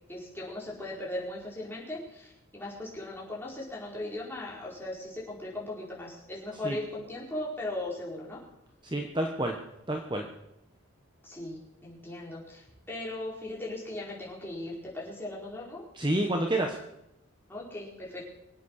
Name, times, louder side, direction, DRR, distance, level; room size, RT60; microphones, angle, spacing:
voice 1, 0.1-8.4 11.2-15.8 17.5-18.2, left 1 dB, 10° left, -5 dB, 4.6 m, -38 dB
voice 2, 8.8-9.6 9.9-10.2 15.9-16.8, right 1 dB, 20° right, 3 dB, 1.1 m, -29 dB
24.0 x 8.4 x 6.5 m, 0.85 s
head